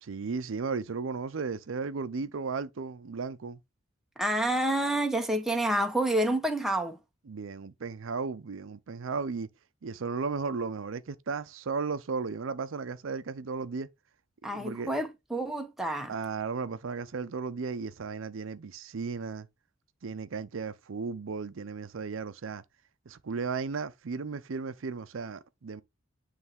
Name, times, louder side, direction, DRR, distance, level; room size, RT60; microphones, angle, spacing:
voice 1, 0.0-3.6 7.3-9.5 9.8-13.9 14.5-14.9 16.1-19.5 20.0-22.6 23.1-25.8, right 5 dB, 75° right, 0.5 m, -35 dB
voice 2, 4.2-7.0 14.4-16.1, right 1 dB, ahead, 0.9 m, -28 dB
9.5 x 3.3 x 3.5 m
head